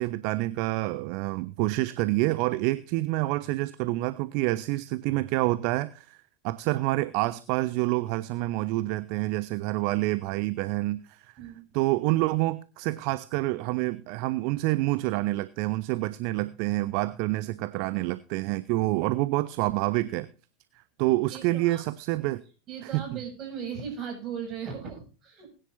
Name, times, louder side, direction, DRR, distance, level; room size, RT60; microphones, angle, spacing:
voice 1, 0.0-6.2 6.4-11.3 11.7-20.3 21.0-22.4, right 19 dB, 50° right, 16 dB, 0.6 m, -27 dB
voice 2, 11.4-11.7 21.3-21.8 22.7-25.5, right 7 dB, 35° right, 3 dB, 6.6 m, -37 dB
20.5 x 10.0 x 2.6 m, 0.34 s
figure-of-eight pair, 80°, 0 cm